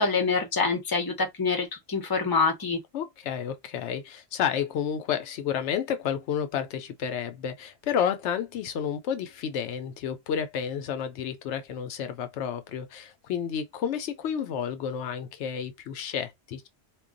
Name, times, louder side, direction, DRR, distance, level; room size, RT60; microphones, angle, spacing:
voice 1, 0.0-2.8, left 4 dB, 25° left, 0.7 m, -26 dB
voice 2, 2.9-16.7, left 8 dB, 80° left, 0.9 m, -31 dB
2.3 x 2.2 x 3.7 m
omnidirectional pair, 1.2 m